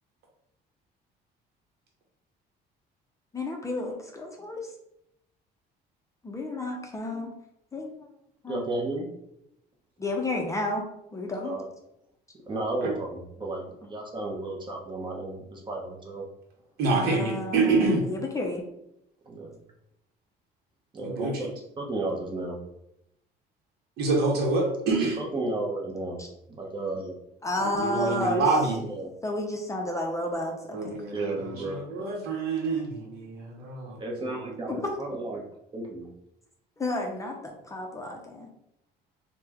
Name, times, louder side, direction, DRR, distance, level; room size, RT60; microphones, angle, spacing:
voice 1, 3.3-4.7 6.2-7.3 7.7-7.9 8.4-8.6 10.0-10.8 11.1-11.6 16.9-18.6 26.2-26.3 27.4-28.5 29.2-31.0 34.7-34.9 36.8-38.5, left 2 dB, 20° left, 1 dB, 0.5 m, -31 dB
voice 2, 8.5-9.1 11.4-11.6 12.5-16.2 19.3-19.5 20.9-21.5 21.8-22.5 24.9-26.2 26.6-27.1 28.9-29.1 31.1-31.7 34.0-35.4 35.7-36.1, right 2 dB, 30° right, -1 dB, 0.7 m, -33 dB
voice 3, 16.8-18.1 21.0-21.5 24.0-25.2 27.6-28.8 30.7-34.6, right 3 dB, 70° right, -1 dB, 0.8 m, -27 dB
3.1 x 2.1 x 3.5 m, 0.81 s
cardioid pair, 110°, 17 cm